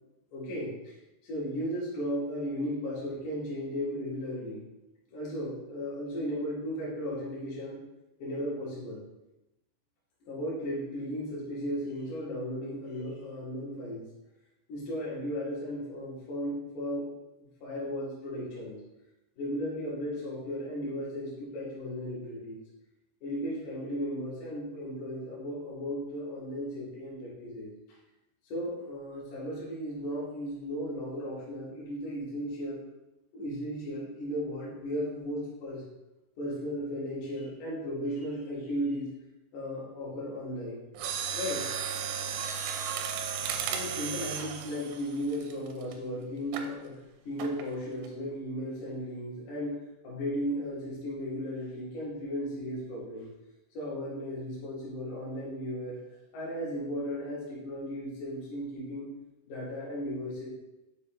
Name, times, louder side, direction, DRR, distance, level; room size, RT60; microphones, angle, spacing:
voice 1, 0.3-0.9 1.2-4.6 5.1-7.8 8.2-9.0 10.3-14.0 14.7-17.1 17.6-18.8 19.4-22.6 23.2-27.7 28.5-32.8 33.3-35.8 36.4-39.1 39.5-40.8 41.3-41.6 43.3-47.0 47.2-49.8 50.0-53.3 53.7-56.0 56.3-59.1 59.5-60.5, equal, 55° left, -7 dB, 3.4 m, -35 dB
Mechanisms, 40.9-45.9 46.5-46.7 47.4-47.7 48.0-48.1, right 7 dB, 85° right, 2.9 m, -34 dB
7.1 x 6.1 x 3.1 m, 0.95 s
omnidirectional pair, 5.0 m